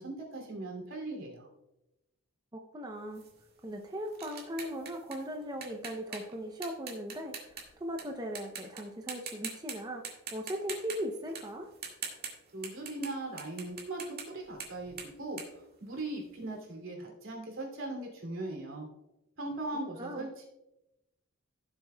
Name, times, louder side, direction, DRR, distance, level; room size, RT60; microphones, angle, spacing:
voice 1, 0.0-1.5 12.5-15.4 15.8-18.9 19.4-20.5, right 2 dB, 75° right, 1 dB, 2.7 m, -39 dB
voice 2, 2.7-3.2 3.6-10.0 10.3-11.7 20.0-20.3, equal, 20° right, 2 dB, 0.6 m, -38 dB
sound 1, 3.1-8.0 8.4-8.8 9.1-9.7 10.0-16.4, right 6 dB, 50° right, 1.9 m, -43 dB
16.5 x 7.1 x 2.3 m, 0.92 s
head